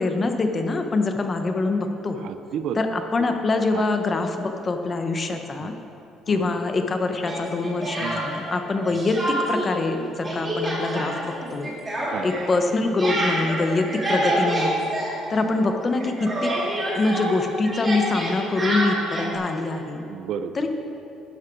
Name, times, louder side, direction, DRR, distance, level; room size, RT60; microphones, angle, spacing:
voice 1, 0.0-2.2 2.8-5.7 6.3-11.7 12.2-14.8 15.3-16.5 17.0-20.0 20.6-20.7, left 3 dB, 25° left, 5 dB, 0.9 m, -24 dB
voice 2, 2.2-3.5 3.7-3.8 5.6-5.7 6.3-6.5 8.0-8.2 8.9-9.0 12.0-12.5 15.3-15.5 20.1-20.7, right 7 dB, 55° right, 10 dB, 0.5 m, -34 dB
Speech, 7.2-8.5 8.8-9.7 10.0-15.7 15.9-19.3, right 1 dB, 20° right, 2.3 m, -27 dB
12.0 x 11.0 x 4.6 m, 2.8 s
cardioid pair, 160°, 0 cm